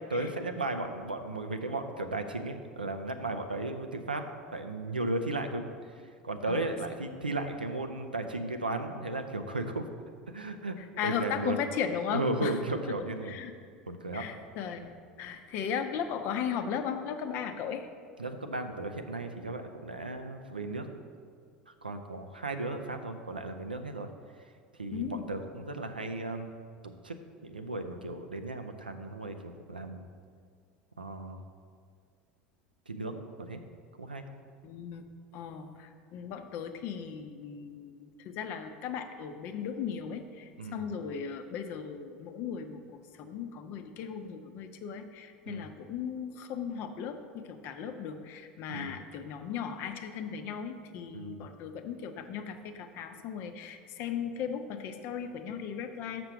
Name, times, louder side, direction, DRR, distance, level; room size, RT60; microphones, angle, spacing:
voice 1, 0.1-5.6 6.2-9.9 10.3-10.8 11.0-11.6 12.1-13.4 13.9-14.3 18.2-20.9 21.7-24.1 24.8-26.5 26.8-27.2 27.4-30.1 31.0-31.4 32.9-33.6 34.0-34.2 40.6-40.8 45.5-45.6 48.7-48.9 51.1-51.5, right 2 dB, 90° right, 6 dB, 0.5 m, -35 dB
voice 2, 10.8-12.5 12.8-12.9 13.3-13.5 14.1-14.8 15.2-17.9 24.9-25.3 34.6-35.0 35.3-42.8 43.2-56.3, left 7 dB, 50° left, 7 dB, 0.7 m, -37 dB
6.7 x 6.0 x 5.7 m, 2.1 s
figure-of-eight pair, 75°, 5 cm